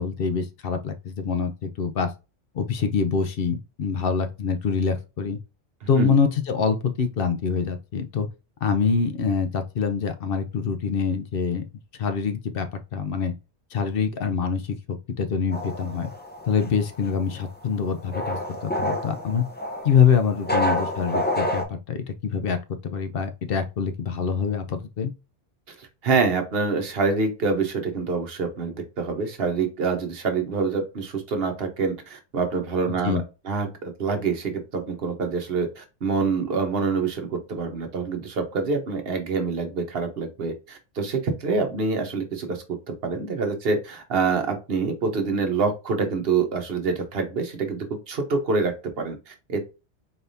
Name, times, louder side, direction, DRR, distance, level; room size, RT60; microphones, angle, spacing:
voice 1, 0.0-2.1 2.5-5.4 5.9-8.3 8.6-11.6 11.9-13.3 13.7-14.8 15.2-16.1 16.5-19.4 19.8-22.6 22.8-25.1 33.0-33.2, left 6 dB, 60° left, 0.7 m, -25 dB
sound 1, 15.5-21.6, left 1 dB, 10° left, 0.5 m, -28 dB
voice 2, 25.8-49.6, right 4 dB, 60° right, 1.1 m, -26 dB
4.1 x 3.3 x 2.6 m
omnidirectional pair, 1.2 m